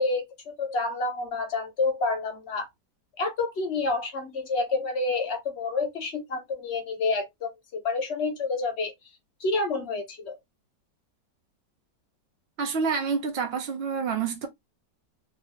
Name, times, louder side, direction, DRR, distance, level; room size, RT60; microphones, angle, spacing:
voice 1, 0.0-2.7 3.2-7.5 7.8-8.9 9.4-10.4, left 3 dB, 55° left, 0.8 m, -28 dB
voice 2, 12.6-14.5, right 5 dB, 80° right, 0.5 m, -28 dB
2.9 x 2.7 x 3.0 m
omnidirectional pair, 1.9 m